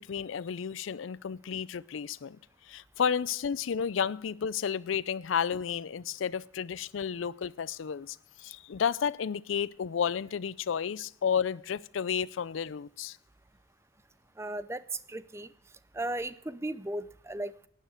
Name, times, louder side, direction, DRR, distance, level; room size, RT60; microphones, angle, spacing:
voice 1, 0.0-2.4 2.7-13.2, left 7 dB, 85° left, 0.4 m, -32 dB
voice 2, 14.4-15.5 15.9-17.7, right 1 dB, 15° right, 0.5 m, -36 dB
12.0 x 9.4 x 6.4 m
head